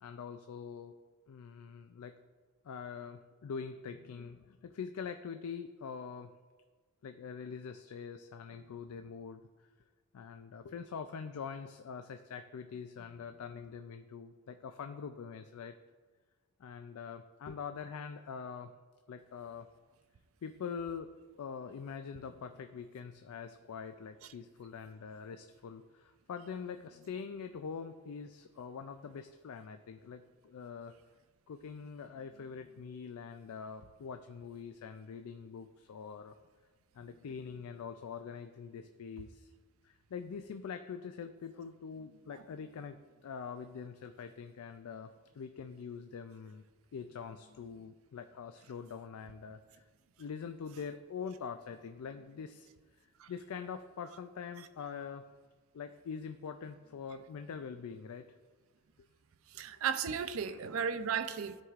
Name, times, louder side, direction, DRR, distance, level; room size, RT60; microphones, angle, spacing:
voice 1, 0.0-0.9 1.3-2.1 2.6-6.3 7.0-9.7 10.1-15.7 16.6-18.7 19.1-19.7 20.4-21.1 21.4-30.9 31.5-36.4 36.9-39.5 39.8-46.7 46.9-49.8 50.2-52.7 53.3-55.2 55.7-58.3 60.4-60.6, left 6 dB, 80° left, 0.4 m, -44 dB
voice 2, 59.5-61.6, right 7 dB, 70° right, 0.4 m, -35 dB
13.0 x 4.7 x 2.4 m
head